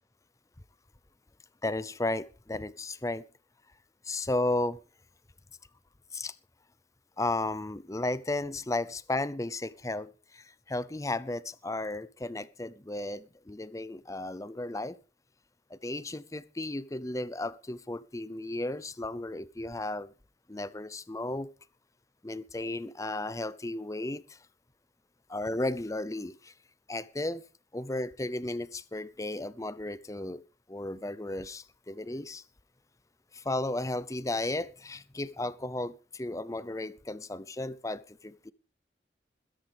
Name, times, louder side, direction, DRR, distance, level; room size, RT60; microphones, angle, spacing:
voice 1, 1.6-3.3 4.0-4.8 6.1-6.3 7.2-15.0 15.7-20.1 20.5-21.5 22.2-24.4 25.3-26.5 26.9-27.4 27.7-30.4 30.7-32.4 33.3-38.5, left 2 dB, 20° left, 0.6 m, -34 dB
21.5 x 10.0 x 3.5 m
head